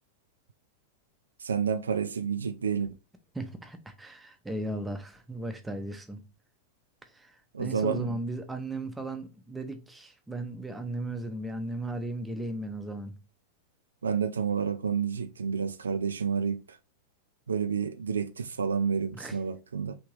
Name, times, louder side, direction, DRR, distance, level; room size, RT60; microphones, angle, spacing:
voice 1, 1.4-2.9 7.5-8.2 14.0-16.8 17.5-20.0, right 6 dB, 70° right, 0.3 m, -29 dB
voice 2, 3.3-6.2 7.1-13.2 19.1-19.4, right 2 dB, 10° right, 0.6 m, -36 dB
3.5 x 2.8 x 3.0 m
figure-of-eight pair, 90°, 0 cm